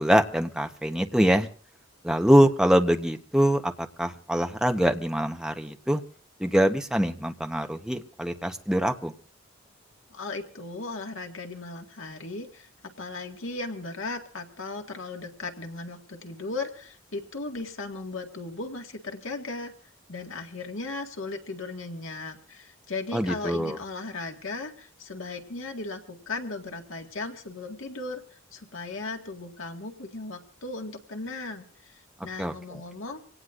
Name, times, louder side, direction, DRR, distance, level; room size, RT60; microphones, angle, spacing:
voice 1, 0.0-1.5 2.0-6.0 6.4-9.1 23.1-23.8 32.4-32.8, equal, 5° right, 5 dB, 0.9 m, -24 dB
voice 2, 10.1-12.7 13.0-19.7 20.1-33.2, left 3 dB, 85° left, 4 dB, 1.8 m, -37 dB
25.5 x 18.0 x 2.5 m, 0.41 s
head